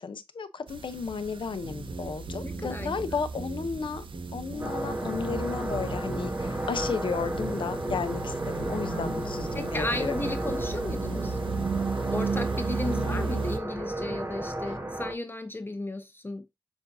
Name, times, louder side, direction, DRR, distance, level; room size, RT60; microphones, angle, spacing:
voice 1, 0.0-4.1 4.3-10.2 12.9-13.5, left 5 dB, 80° left, 0.6 m, -33 dB
sound 1, 0.7-13.6, right 5 dB, 85° right, 0.4 m, -36 dB
sound 2, 1.6-11.9, right 2 dB, 55° right, 1.0 m, -40 dB
voice 2, 2.4-2.9 8.9-11.4 12.1-16.5, left 2 dB, 25° left, 0.6 m, -35 dB
sound 3, 4.6-15.1, right 1 dB, 30° right, 0.9 m, -33 dB
6.9 x 2.6 x 2.6 m
cardioid pair, 50°, 9 cm